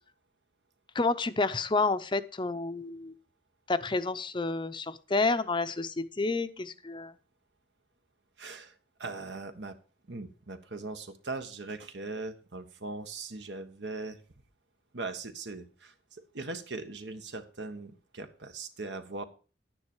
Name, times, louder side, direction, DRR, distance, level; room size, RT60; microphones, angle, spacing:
voice 1, 0.9-3.1 3.7-7.1, left 3 dB, 25° left, 0.6 m, -29 dB
voice 2, 8.4-9.8 10.1-14.2 14.9-19.2, right 3 dB, 75° right, 1.4 m, -40 dB
11.0 x 9.7 x 4.5 m
head